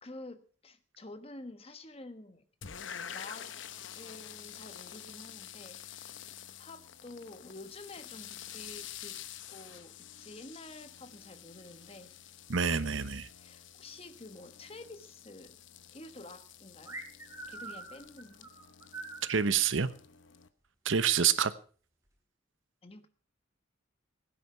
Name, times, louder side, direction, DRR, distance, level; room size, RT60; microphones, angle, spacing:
voice 1, 0.0-2.5 3.1-3.5 3.9-6.0 6.6-9.2 9.5-12.1 13.4-15.6 15.9-17.0 17.5-18.5 22.8-23.1, left 2 dB, 30° left, 10 dB, 1.2 m, -49 dB
sound 1, 2.6-20.5, left 9 dB, 70° left, 0.9 m, -48 dB
voice 2, 12.5-13.3 19.2-19.9 20.8-21.5, right 7 dB, 75° right, 14 dB, 0.9 m, -27 dB
sound 2, 16.9-19.4, right 2 dB, 15° right, 3.4 m, -44 dB
17.0 x 9.9 x 5.5 m, 0.41 s
head